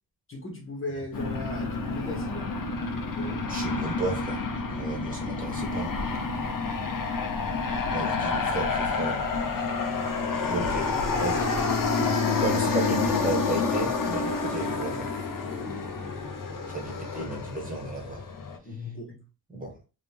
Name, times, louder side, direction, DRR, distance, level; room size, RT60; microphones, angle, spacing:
voice 1, 0.3-2.6 3.1-3.5 15.4-16.1 18.6-19.2, left 2 dB, 30° left, 0 dB, 1.3 m, -38 dB
Aircraft, 1.1-18.6, left 4 dB, 55° left, 0.9 m, -29 dB
voice 2, 3.5-4.4 4.7-5.9 7.9-9.3 10.5-10.9 11.2-11.5 12.4-15.1 16.7-18.2 19.5-19.7, right 2 dB, 20° right, 1 dB, 1.4 m, -33 dB
sound 1, 5.4-13.3, equal, 90° right, 1.4 m, -42 dB
3.6 x 3.5 x 3.6 m, 0.31 s
wide cardioid pair, 140°, 39 cm